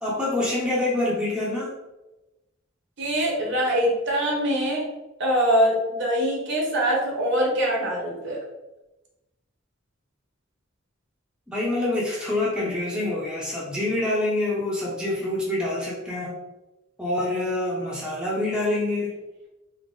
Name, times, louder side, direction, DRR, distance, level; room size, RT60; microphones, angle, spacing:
voice 1, 0.0-1.7 11.5-16.4 17.0-19.1, left 2 dB, 5° right, -6 dB, 0.7 m, -26 dB
voice 2, 3.0-4.8 5.2-8.4, equal, 60° right, -2 dB, 1.1 m, -23 dB
3.8 x 2.0 x 3.8 m, 1.0 s
head